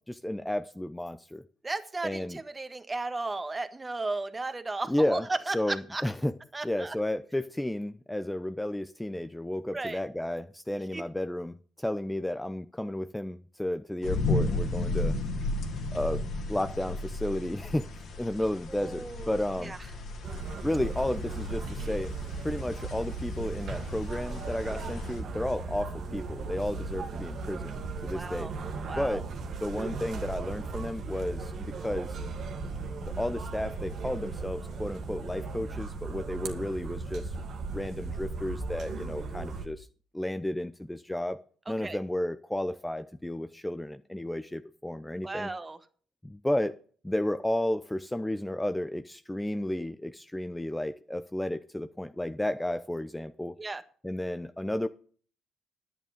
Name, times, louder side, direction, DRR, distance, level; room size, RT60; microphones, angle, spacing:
voice 1, 0.0-1.4 2.0-2.4 4.9-5.3 5.5-6.3 6.6-15.2 15.9-16.2 16.5-17.9 18.2-19.8 20.6-22.1 22.4-28.5 29.0-29.2 29.6-32.2 33.0-37.3 37.7-39.9 40.1-41.4 41.7-45.5 46.2-46.7 47.0-53.5 54.0-54.9, left 1 dB, 10° left, 10 dB, 0.8 m, -32 dB
voice 2, 1.6-6.0 6.5-7.0 9.7-10.0 10.9-11.0 18.7-19.8 28.1-28.5 28.9-29.2 41.8-42.0 45.2-45.8 53.6-53.8, right 3 dB, 25° right, 9 dB, 1.6 m, -35 dB
sound 1, 14.0-25.2, left 2 dB, 60° left, 2.7 m, -34 dB
sound 2, 20.2-39.7, right 4 dB, 55° right, 2.0 m, -37 dB
11.0 x 9.2 x 5.2 m, 0.43 s
hypercardioid pair, 50°, 0 cm